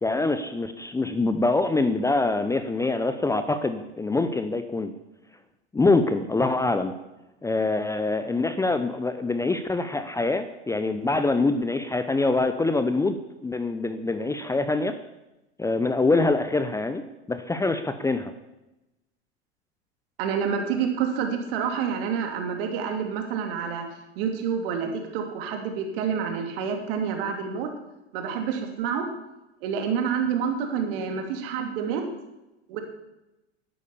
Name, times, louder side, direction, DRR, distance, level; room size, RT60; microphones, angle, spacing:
voice 1, 0.0-4.9 5.7-6.9 7.4-15.0 15.6-17.0 17.3-18.3, left 3 dB, 10° left, 10 dB, 0.7 m, -24 dB
voice 2, 20.2-23.9 24.2-27.7 28.1-29.1 29.6-32.1 32.7-32.8, right 7 dB, 60° right, 4 dB, 2.8 m, -28 dB
11.5 x 9.8 x 7.1 m, 0.97 s
hypercardioid pair, 95°, 33 cm